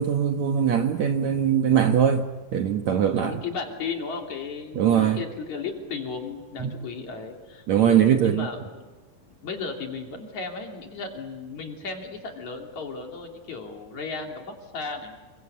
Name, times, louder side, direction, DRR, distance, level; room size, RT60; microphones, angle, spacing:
voice 1, 0.0-3.4 4.7-5.2 6.6-6.8 7.7-8.5, right 8 dB, 65° right, 2.0 m, -21 dB
voice 2, 3.2-8.9 9.4-15.2, left 4 dB, 50° left, 4.2 m, -35 dB
28.5 x 23.5 x 8.5 m
omnidirectional pair, 4.2 m